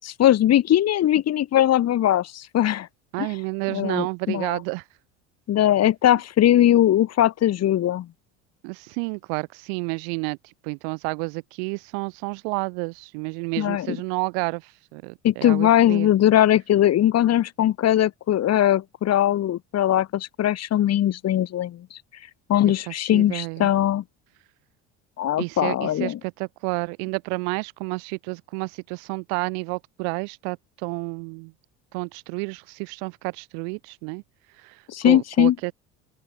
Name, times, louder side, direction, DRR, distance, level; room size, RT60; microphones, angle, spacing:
voice 1, 0.0-2.9 3.2-3.3 3.7-4.6 5.5-8.1 13.6-14.0 15.2-21.9 22.5-24.0 25.2-26.2 34.9-35.5, left 12 dB, 50° left, 6.3 m, -20 dB
voice 2, 3.1-4.9 8.6-16.1 22.6-23.7 25.4-31.5 31.9-34.2 34.5-35.7, right 40 dB or more, 80° right, 2.7 m, -30 dB
open air
supercardioid pair, 100°, 32 cm